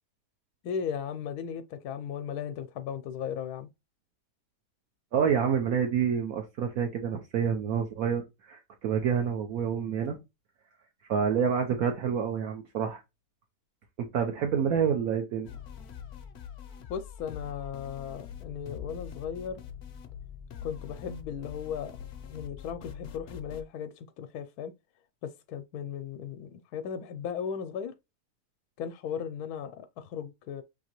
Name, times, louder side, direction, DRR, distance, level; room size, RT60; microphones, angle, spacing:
voice 1, 0.6-3.7 16.9-19.6 20.6-22.0 22.3-24.7 25.2-27.9 28.8-30.6, left 7 dB, 80° left, 1.1 m, -36 dB
voice 2, 5.1-10.2 11.1-13.0 14.0-15.5, right 7 dB, 70° right, 1.2 m, -28 dB
sound 1, 15.4-23.6, left 8 dB, 60° left, 0.7 m, -44 dB
6.3 x 2.9 x 2.9 m
omnidirectional pair, 1.6 m